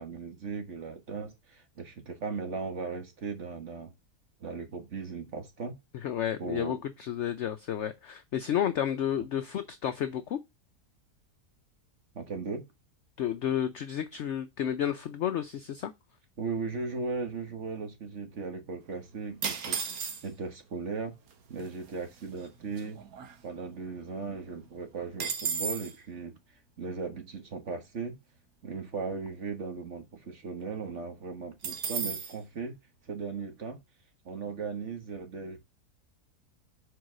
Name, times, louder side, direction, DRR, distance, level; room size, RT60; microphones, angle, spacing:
voice 1, 0.0-3.9 4.4-5.8 6.4-6.8 9.2-9.3 12.1-12.6 16.4-20.0 20.2-21.1 21.5-23.0 23.4-26.4 26.8-28.2 28.6-32.8 33.1-33.8 34.2-35.6, right 4 dB, 50° right, 1.7 m, -37 dB
voice 2, 6.0-10.4 13.2-15.9, left 10 dB, 65° left, 0.7 m, -31 dB
sound 1, 19.4-20.5 21.3-21.4 21.6-21.9 22.4-23.8 24.2-24.3 24.6-26.0 31.6-32.4, right 6 dB, 65° right, 1.4 m, -34 dB
4.8 x 4.6 x 6.1 m
omnidirectional pair, 1.7 m